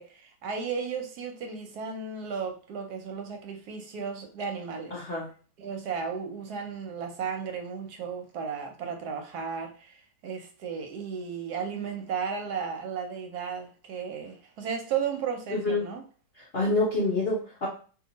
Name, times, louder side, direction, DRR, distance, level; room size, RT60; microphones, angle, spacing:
voice 1, 0.0-5.0 5.6-16.0, right 6 dB, 70° right, 1.0 m, -34 dB
voice 2, 4.9-5.3 15.5-15.9 16.4-17.7, left 2 dB, 55° left, 0.7 m, -27 dB
2.9 x 2.4 x 3.9 m
omnidirectional pair, 2.0 m